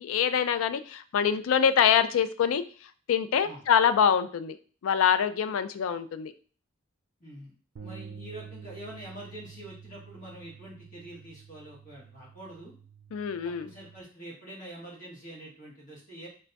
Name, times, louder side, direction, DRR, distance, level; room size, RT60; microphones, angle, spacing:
voice 1, 0.0-4.6 4.8-6.3 13.1-13.7, left 8 dB, 70° left, 12 dB, 0.3 m, -25 dB
voice 2, 7.2-7.5 7.8-12.7 13.4-16.3, right 1 dB, 40° left, -4 dB, 1.5 m, -45 dB
sound 1, 7.8-14.0, right 7 dB, 65° right, 0.4 m, -48 dB
3.3 x 2.2 x 3.9 m, 0.40 s
head